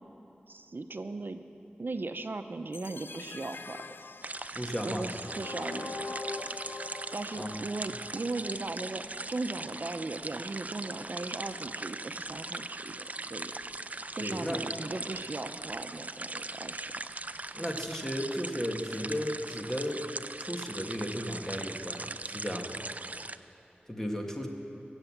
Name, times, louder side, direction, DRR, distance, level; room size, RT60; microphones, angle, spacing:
voice 1, 0.5-1.4 1.8-3.8 4.8-6.2 7.1-13.5 14.1-16.9, right 3 dB, 65° right, 8 dB, 0.8 m, -38 dB
sound 1, 2.7-8.7, left 3 dB, 70° left, 0.4 m, -43 dB
sound 2, 4.2-23.4, right 2 dB, 40° right, 0.4 m, -40 dB
voice 2, 4.5-5.2 7.3-7.5 14.2-14.6 17.5-20.0 20.4-22.8 23.9-24.5, equal, 10° left, 1 dB, 1.8 m, -35 dB
22.5 x 8.2 x 7.4 m, 2.8 s
wide cardioid pair, 55°, 4 cm